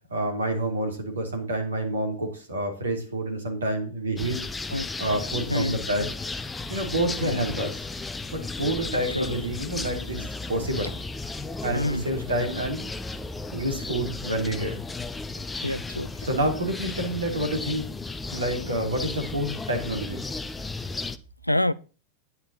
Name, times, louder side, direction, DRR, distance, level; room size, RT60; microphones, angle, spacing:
voice 1, 0.1-4.4 5.0-6.0 6.7-7.8 8.3-11.0 11.6-12.9 13.5-14.8 16.2-17.9 18.3-20.3, right 1 dB, 70° right, 3.6 m, -28 dB
sound 1, 4.2-21.2, left 3 dB, 10° left, 0.8 m, -34 dB
voice 2, 8.9-9.3 11.7-12.0 15.6-16.1 21.4-21.7, left 1 dB, 90° left, 0.5 m, -27 dB
10.0 x 9.7 x 4.3 m
figure-of-eight pair, 90°, 0 cm